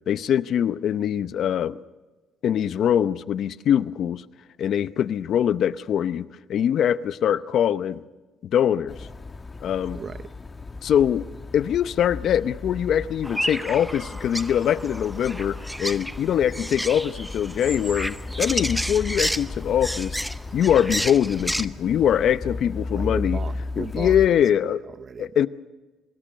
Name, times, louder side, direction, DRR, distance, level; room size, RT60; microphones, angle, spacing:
voice 1, 0.1-1.8 2.4-4.2 4.6-8.0 8.4-9.1 9.6-10.0 10.8-11.3 11.5-20.2 20.5-23.4 23.8-24.8 25.2-25.5, left 9 dB, 60° left, 0.7 m, -23 dB
sound 1, 8.9-24.3, left 3 dB, 25° left, 1.2 m, -35 dB
voice 2, 9.9-10.3 22.9-25.5, right 6 dB, 40° right, 0.7 m, -38 dB
sound 2, 13.2-21.6, equal, 5° right, 0.7 m, -31 dB
24.5 x 20.0 x 6.6 m
cardioid pair, 115°, 0 cm